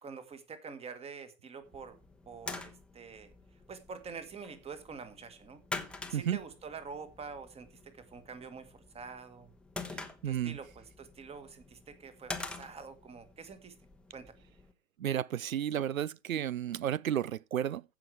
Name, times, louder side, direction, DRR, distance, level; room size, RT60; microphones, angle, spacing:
voice 1, 0.0-2.0 2.2-3.3 3.7-5.6 6.1-9.5 10.2-13.7 14.1-14.4, right 5 dB, 15° right, 1.6 m, -46 dB
sound 1, 1.7-14.7, left 3 dB, 5° left, 0.9 m, -46 dB
voice 2, 9.9-10.6 15.0-17.8, right 10 dB, 85° right, 0.5 m, -32 dB
15.0 x 5.9 x 4.7 m
figure-of-eight pair, 110°, 40 cm